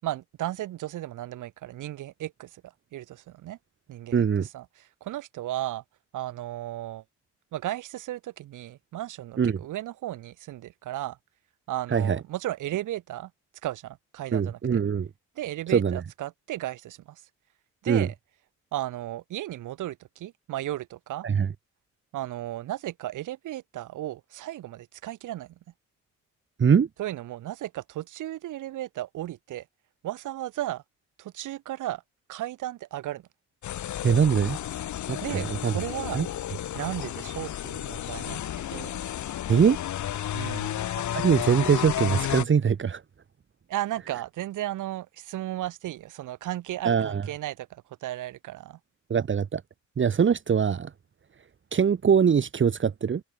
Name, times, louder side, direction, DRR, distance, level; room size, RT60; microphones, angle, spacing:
voice 1, 0.0-3.6 3.9-5.8 6.1-7.0 7.5-11.2 11.7-13.3 13.6-14.6 15.4-17.2 17.8-18.1 18.7-21.3 22.1-25.5 27.0-29.6 30.0-30.8 31.2-32.0 32.3-33.2 35.2-36.2 36.7-39.0 40.3-40.8 43.7-48.8, right 14 dB, 85° right, 6.6 m, -35 dB
voice 2, 4.1-4.5 9.4-9.6 11.9-12.2 14.3-15.1 15.7-16.0 17.9-18.1 21.2-21.5 26.6-26.9 34.0-34.6 35.1-35.7 36.1-36.3 39.5-39.8 41.1-43.0 46.8-47.3 49.1-49.6 50.0-50.9 51.7-53.2, right 7 dB, 40° right, 1.8 m, -22 dB
sound 1, 33.6-42.4, left 11 dB, 70° left, 4.6 m, -32 dB
cardioid pair, 90°, 30 cm